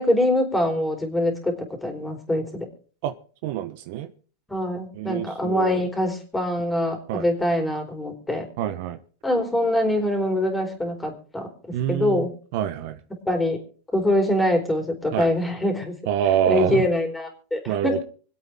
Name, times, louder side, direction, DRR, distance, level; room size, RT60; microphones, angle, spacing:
voice 1, 0.0-1.5 1.8-2.7 4.5-8.5 9.2-12.3 13.3-13.6 13.9-15.9 16.5-18.0, left 1 dB, 5° left, 4.3 m, -24 dB
voice 2, 3.4-4.1 4.9-5.9 7.1-7.2 8.6-9.0 11.7-12.3 12.5-13.0 15.1-15.3 16.1-16.9 17.7-18.0, right 10 dB, 60° right, 1.0 m, -26 dB
25.5 x 8.5 x 3.6 m
supercardioid pair, 125°, 0 cm